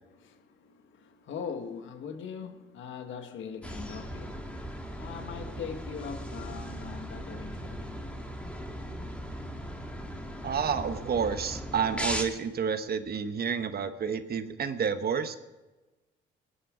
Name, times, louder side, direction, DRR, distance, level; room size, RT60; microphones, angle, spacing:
voice 1, 0.1-8.1, left 6 dB, 75° left, 1.4 m, -41 dB
sound 1, 3.6-12.2, equal, 5° left, 2.1 m, -38 dB
voice 2, 10.4-15.4, right 6 dB, 50° right, 1.1 m, -30 dB
19.0 x 10.0 x 5.0 m
cardioid pair, 90°, 20 cm